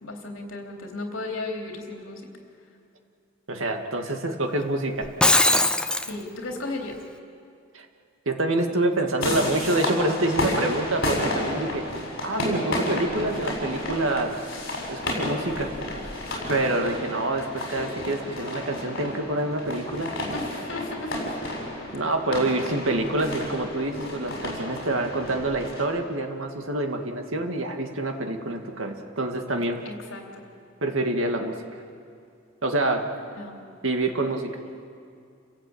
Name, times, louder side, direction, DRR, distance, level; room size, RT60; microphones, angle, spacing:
voice 1, 0.0-2.4 6.0-7.0 20.3-21.4 29.8-30.4 33.3-33.7, left 2 dB, 75° left, 2 dB, 3.5 m, -35 dB
voice 2, 3.5-5.1 7.7-7.9 8.3-11.9 12.2-14.3 14.9-15.7 16.5-20.1 21.9-29.8 30.8-31.6 32.6-33.1 33.8-34.6, right 2 dB, 75° right, 4 dB, 2.2 m, -26 dB
Shatter, 5.0-6.1, left 2 dB, 5° left, 0.6 m, -20 dB
sound 1, 9.2-25.8, left 1 dB, 50° left, 7.1 m, -31 dB
29.5 x 16.5 x 8.8 m, 2.5 s
head